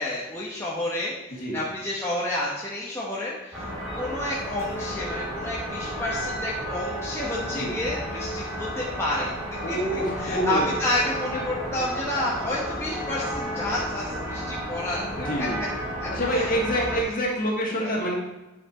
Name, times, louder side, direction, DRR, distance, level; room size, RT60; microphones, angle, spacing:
voice 1, 0.0-3.7 3.9-9.3 9.7-15.5 16.0-16.5 16.8-17.0 17.8-18.0, left 1 dB, 10° left, -6 dB, 1.1 m, -30 dB
sound 1, 3.5-17.0, equal, 15° right, 3.4 m, -32 dB
voice 2, 9.6-10.7 15.2-15.6 16.1-18.1, equal, 40° left, -1 dB, 2.0 m, -27 dB
9.6 x 5.9 x 4.4 m, 1.0 s
head